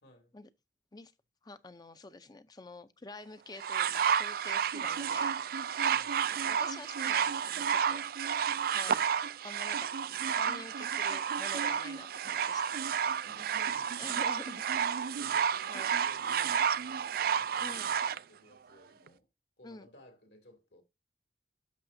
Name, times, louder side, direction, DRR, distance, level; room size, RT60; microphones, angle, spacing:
voice 1, 0.0-0.3 5.9-6.3 13.2-14.2 15.1-19.3 19.6-20.8, equal, 75° left, 2.8 m, -57 dB
voice 2, 1.4-5.4 6.3-8.0 8.7-9.1 9.4-9.9 10.3-12.7 14.0-14.6 15.7-15.9 17.6-17.9 19.6-19.9, left 3 dB, 25° left, 0.6 m, -47 dB
sound 1, 3.6-18.2 19.1-19.2, right 8 dB, 55° right, 0.4 m, -31 dB
11.5 x 6.5 x 2.7 m
head